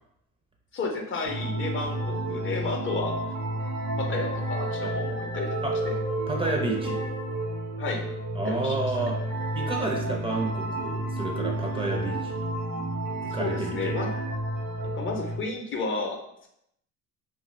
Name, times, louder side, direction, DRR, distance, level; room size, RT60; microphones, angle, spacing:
voice 1, 0.7-3.2 4.0-5.6 5.8-6.0 6.4-6.5 7.8-8.1 8.5-9.0 13.3-14.1 14.8-16.5, left 3 dB, 40° left, 2 dB, 0.5 m, -32 dB
sound 1, 1.2-15.4, right 1 dB, 85° right, 0.9 m, -31 dB
voice 2, 6.3-7.0 8.3-9.2 9.5-12.4 13.3-14.2, right 2 dB, 20° right, 0 dB, 0.4 m, -30 dB
2.6 x 2.5 x 3.1 m, 0.78 s
cardioid pair, 120°, 31 cm